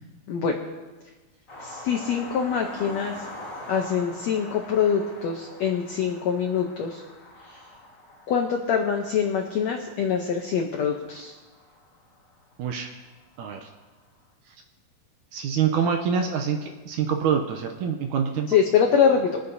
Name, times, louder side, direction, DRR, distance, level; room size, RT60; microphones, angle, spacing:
voice 1, 0.3-0.6 1.6-3.1 3.7-7.0 7.5-7.6 8.3-11.3 18.5-19.4, left 7 dB, 80° left, 2 dB, 1.5 m, -24 dB
sound 1, 1.5-12.5 13.6-13.7 14.0-14.1, left 1 dB, 40° left, 1.2 m, -43 dB
voice 2, 12.6-12.9 13.4-13.7 15.3-18.5, right 7 dB, 75° right, 4 dB, 2.0 m, -26 dB
23.0 x 9.4 x 2.8 m, 1.3 s
omnidirectional pair, 4.2 m